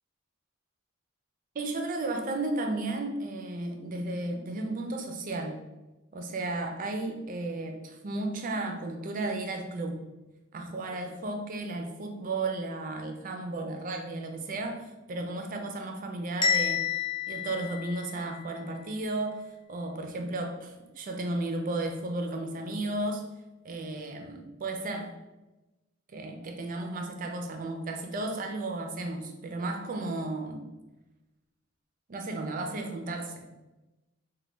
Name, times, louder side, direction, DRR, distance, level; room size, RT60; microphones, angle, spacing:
voice 1, 1.5-5.6 6.1-10.0 10.5-16.8 17.3-19.4 19.7-23.2 23.6-25.1 26.1-30.7 32.1-33.5, right 2 dB, 40° right, 4 dB, 0.4 m, -34 dB
Bell, 16.4-18.5, left 7 dB, 25° left, 0.4 m, -29 dB
3.0 x 2.2 x 3.2 m, 1.1 s
head